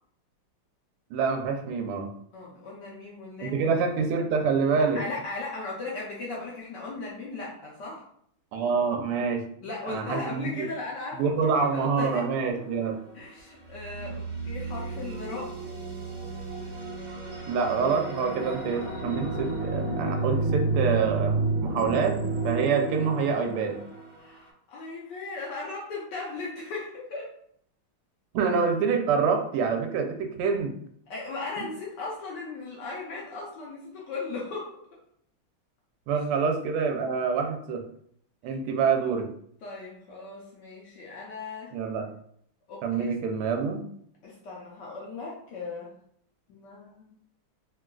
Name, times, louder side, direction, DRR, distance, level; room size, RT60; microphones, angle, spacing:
voice 1, 1.1-2.1 3.4-5.0 8.5-9.4 9.9-10.7 11.1-13.0 17.5-22.2 22.4-23.8 28.3-30.7 31.6-31.7 36.1-37.8 38.4-39.3 41.7-42.1 42.8-43.8, right 5 dB, 85° right, 4 dB, 1.5 m, -26 dB
voice 2, 2.3-3.7 4.7-8.0 9.6-12.3 13.1-15.6 24.2-27.3 31.1-35.0 36.1-36.2 39.6-41.7 42.7-43.1 44.2-45.9 46.5-47.1, left 3 dB, 70° left, -4 dB, 1.1 m, -37 dB
sound 1, 12.5-13.1 13.6-24.2, right 2 dB, 45° right, 1.4 m, -31 dB
3.7 x 2.3 x 2.2 m, 0.65 s
omnidirectional pair, 2.4 m